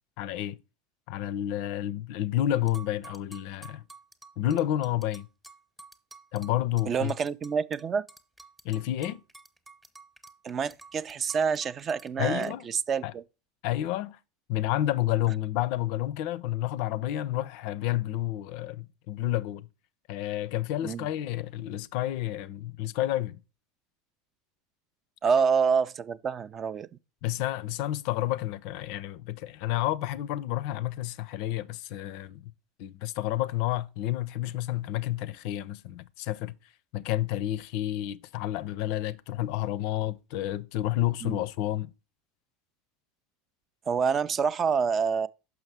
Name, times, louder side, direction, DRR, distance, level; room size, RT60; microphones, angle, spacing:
voice 1, 0.2-0.6 1.1-3.8 4.4-5.3 6.3-7.1 8.6-9.2 12.2-12.7 13.0-13.1 13.6-14.2 14.5-19.7 20.1-23.4 27.2-32.4 32.8-36.5 36.9-41.9, left 13 dB, 55° left, 0.4 m, -30 dB
sound 1, 2.7-7.8 8.1-12.1 12.4-12.5, right 3 dB, 10° right, 0.9 m, -50 dB
voice 2, 6.9-8.0 10.4-13.2 20.8-21.1 25.2-26.9 41.2-41.4 43.9-45.3, right 6 dB, 30° right, 0.3 m, -27 dB
6.2 x 5.9 x 3.3 m
figure-of-eight pair, 80°, 0 cm